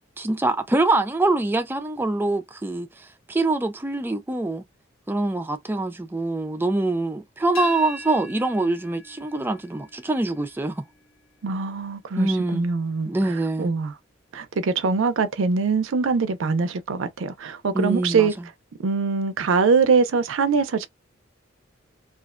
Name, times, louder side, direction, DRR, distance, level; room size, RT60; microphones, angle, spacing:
voice 1, 0.2-2.9 3.3-4.6 5.1-10.8 12.2-12.7 13.1-13.7 17.7-18.3, right 2 dB, 10° right, 0.3 m, -24 dB
sound 1, 7.5-13.3, equal, 80° left, 1.3 m, -42 dB
voice 2, 11.4-13.9 14.3-18.3 18.8-20.9, right 5 dB, 75° right, 0.4 m, -23 dB
2.4 x 2.1 x 2.4 m
head